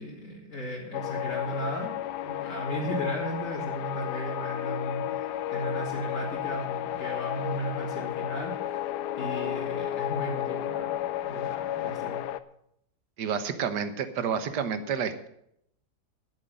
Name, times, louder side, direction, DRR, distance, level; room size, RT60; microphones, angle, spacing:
voice 1, 0.0-1.9 2.2-8.5 9.2-12.2, right 1 dB, 50° left, -5 dB, 2.7 m, -35 dB
sound 1, 0.9-12.4, left 12 dB, 75° left, 1.2 m, -32 dB
voice 2, 13.2-15.3, right 7 dB, 80° right, 11 dB, 1.7 m, -30 dB
11.0 x 8.4 x 7.6 m, 0.74 s
omnidirectional pair, 1.8 m